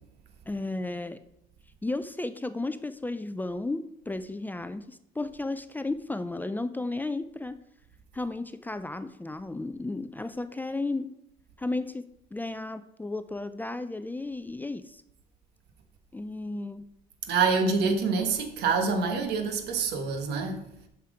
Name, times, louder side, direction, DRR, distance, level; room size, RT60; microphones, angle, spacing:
voice 1, 0.5-1.2 1.8-7.6 8.1-11.1 11.6-15.0 16.1-16.9, left 2 dB, 10° left, 0.4 m, -34 dB
voice 2, 17.3-20.6, right 4 dB, 80° right, 1.2 m, -26 dB
7.4 x 5.9 x 4.8 m
cardioid pair, 110°, 17 cm